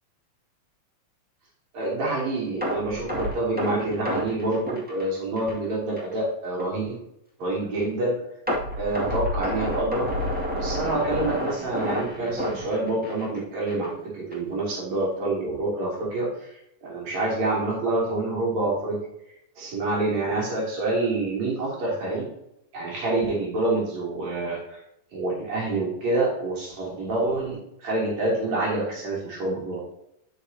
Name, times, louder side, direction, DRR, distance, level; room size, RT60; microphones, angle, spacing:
voice 1, 1.7-7.0 7.4-8.2 8.8-10.1 10.5-16.3 16.8-19.0 19.6-22.3 22.7-24.8 25.1-29.8, right 2 dB, 60° right, -5 dB, 4.5 m, -27 dB
sound 1, 2.6-5.6 6.0-6.1 6.6-6.7 8.5-13.4 13.7-13.9 14.3-14.4, equal, 5° right, 1.5 m, -29 dB
9.8 x 7.0 x 2.9 m, 0.81 s
omnidirectional pair, 3.6 m